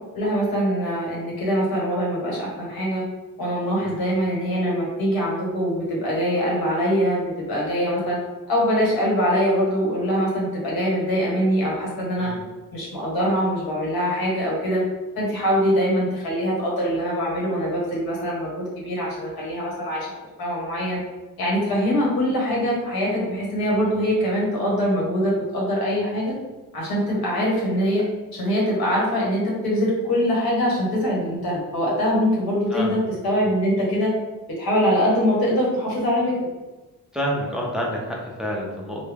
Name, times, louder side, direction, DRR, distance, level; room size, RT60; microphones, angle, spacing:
voice 1, 0.1-3.0 3.4-8.2 8.5-12.3 12.7-14.8 15.1-20.1 20.4-21.0 21.4-26.3 26.7-28.0 28.3-34.1 34.6-36.4, equal, 90° left, -4 dB, 1.3 m, -23 dB
voice 2, 37.1-39.0, equal, ahead, -3 dB, 0.5 m, -28 dB
3.3 x 2.3 x 3.3 m, 1.2 s
cardioid pair, 120°, 35 cm